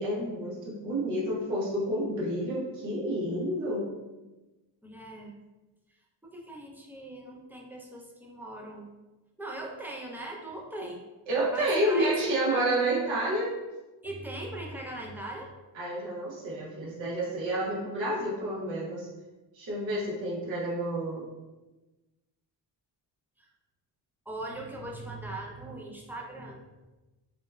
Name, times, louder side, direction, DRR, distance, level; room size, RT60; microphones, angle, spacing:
voice 1, 0.0-3.8 11.3-13.5 15.7-19.1 19.5-21.2, right 1 dB, 80° right, -5 dB, 1.1 m, -29 dB
voice 2, 4.8-5.3 6.2-8.9 9.4-11.0 11.5-12.3 14.0-15.5 24.3-26.6, right 1 dB, 5° right, -1 dB, 0.4 m, -40 dB
3.0 x 2.1 x 2.2 m, 1.1 s
supercardioid pair, 65°, 45 cm